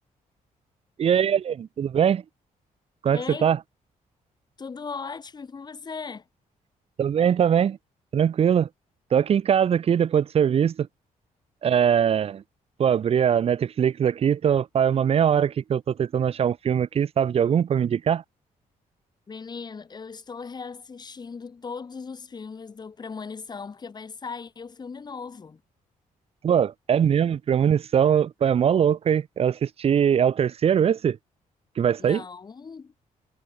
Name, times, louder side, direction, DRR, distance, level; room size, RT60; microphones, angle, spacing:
voice 1, 1.0-2.2 3.0-3.6 7.0-7.8 8.1-8.7 9.1-10.9 11.6-12.4 12.8-18.2 26.4-31.2 31.8-32.2, right 8 dB, 45° right, 0.5 m, -21 dB
voice 2, 3.1-3.5 4.6-6.2 19.3-25.6 32.0-32.9, left 5 dB, 30° left, 0.9 m, -38 dB
cardioid pair, 105°, 14 cm